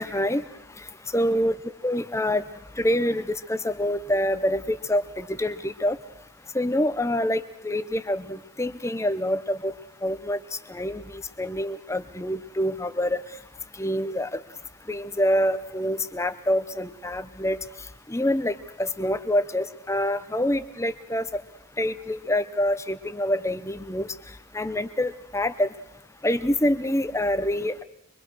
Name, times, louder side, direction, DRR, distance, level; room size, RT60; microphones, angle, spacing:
voice 1, 0.0-1.6 1.8-6.0 6.5-13.4 13.7-21.4 21.8-25.7 26.2-27.8, left 1 dB, 15° left, 13 dB, 0.9 m, -26 dB
24.5 x 23.5 x 6.4 m, 0.83 s
head